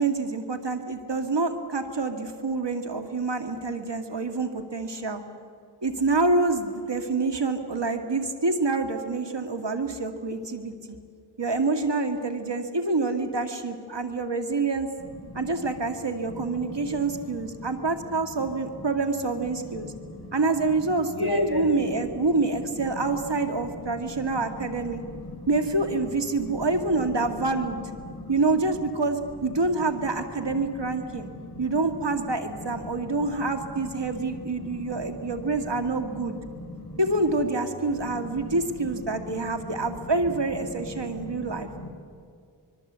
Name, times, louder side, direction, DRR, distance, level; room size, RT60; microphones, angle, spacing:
voice 1, 0.0-5.2 5.8-11.0 11.4-14.9 15.3-19.9 20.3-25.0 25.5-27.8 28.3-31.3 31.6-36.4 37.0-41.7, right 3 dB, 75° right, 6 dB, 2.1 m, -27 dB
voice 2, 21.1-21.7 25.2-25.4 26.4-26.5 28.0-28.3 31.2-31.6 34.6-34.8 36.6-37.0 41.0-41.5 41.8-41.9, left 1 dB, 60° left, 4 dB, 4.9 m, -33 dB
25.5 x 22.5 x 8.1 m, 2.2 s
wide cardioid pair, 50°, 43 cm